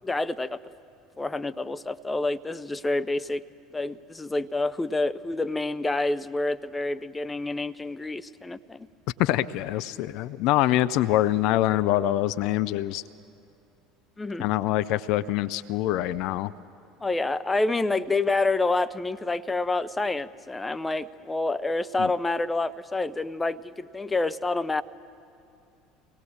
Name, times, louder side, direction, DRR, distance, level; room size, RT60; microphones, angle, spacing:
voice 1, 0.0-0.6 1.2-3.4 3.7-8.9 14.2-14.4 17.0-24.8, left 2 dB, 15° left, 12 dB, 0.7 m, -28 dB
voice 2, 9.2-13.0 14.4-16.5 22.0-22.1, left 14 dB, 60° left, 16 dB, 0.5 m, -25 dB
25.0 x 18.5 x 7.3 m, 2.6 s
hypercardioid pair, 70°, 0 cm